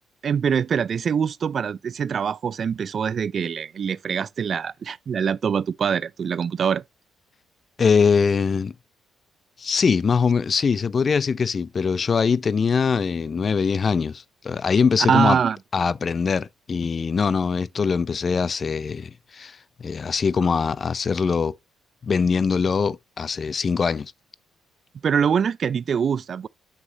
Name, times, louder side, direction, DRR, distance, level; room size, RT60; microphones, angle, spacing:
voice 1, 0.2-6.8 15.1-15.6 25.0-26.5, right 7 dB, 50° right, 0.3 m, -24 dB
voice 2, 7.8-8.7 9.6-15.4 15.7-21.6 22.1-24.1, left 5 dB, 40° left, 0.4 m, -22 dB
7.3 x 6.4 x 2.9 m
cardioid pair, 90°, 0 cm